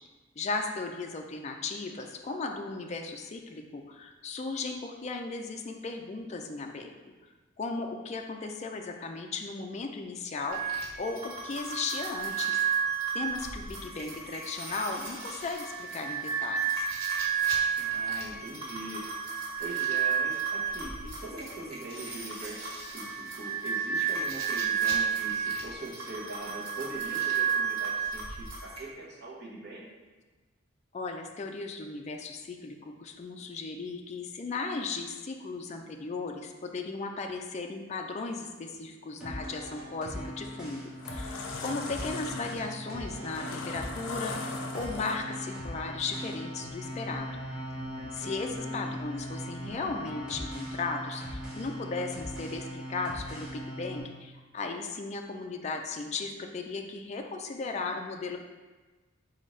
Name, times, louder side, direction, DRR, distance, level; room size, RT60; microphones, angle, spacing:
voice 1, 0.4-6.9 7.6-12.6 13.1-16.6 30.9-40.8 41.1-47.3 48.1-58.4, left 3 dB, 35° left, 3 dB, 0.3 m, -36 dB
sound 1, 10.5-28.8, right 7 dB, 90° right, 1.2 m, -32 dB
voice 2, 17.8-29.8 48.2-48.7, right 2 dB, 50° right, -5 dB, 1.2 m, -42 dB
sound 2, 39.2-54.0, equal, 5° right, 1.1 m, -39 dB
sound 3, 40.1-40.3 40.8-45.5, left 4 dB, 90° left, 0.5 m, -40 dB
4.3 x 3.9 x 3.2 m, 1.3 s
head